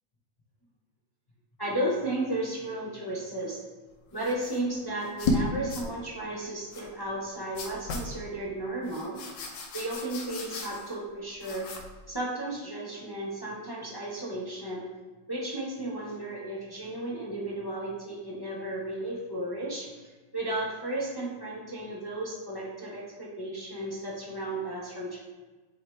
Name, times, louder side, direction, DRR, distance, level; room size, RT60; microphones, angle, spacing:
voice 1, 1.6-3.6 4.1-9.2 9.7-11.7 12.1-14.8 15.3-25.2, right 1 dB, 30° left, -5 dB, 0.4 m, -34 dB
sound 1, 4.2-4.6 5.0-5.4 5.7-5.9 6.7-6.9 7.5-8.1 8.8-11.0 11.4-11.9, left 2 dB, 70° left, 1.4 m, -34 dB
7.7 x 3.8 x 3.4 m, 1.3 s
omnidirectional pair, 2.0 m